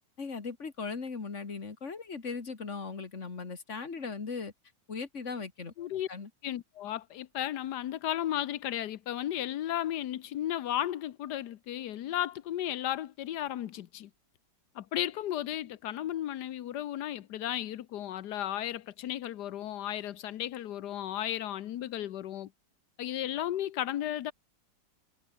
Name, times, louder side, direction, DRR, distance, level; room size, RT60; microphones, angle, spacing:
voice 1, 0.2-4.5 4.9-5.7 6.1-6.3, left 4 dB, 40° left, 2.4 m, -38 dB
voice 2, 5.8-6.1 6.4-14.1 14.7-22.5 23.0-24.3, left 12 dB, 70° left, 1.4 m, -34 dB
omnidirectional pair, 1.9 m